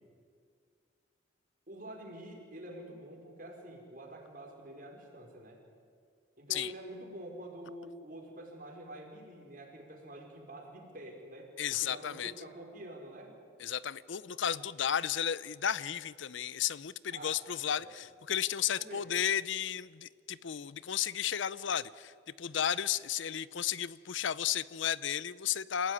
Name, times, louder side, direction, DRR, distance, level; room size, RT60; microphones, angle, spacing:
voice 1, 1.7-5.6 6.4-13.3 17.1-17.4 17.8-17.9 18.8-19.1, right 1 dB, 45° right, 1 dB, 4.9 m, -47 dB
voice 2, 11.6-12.3 13.6-22.1 22.4-25.9, left 9 dB, 70° left, 19 dB, 0.6 m, -33 dB
28.5 x 16.5 x 9.7 m, 2.1 s
head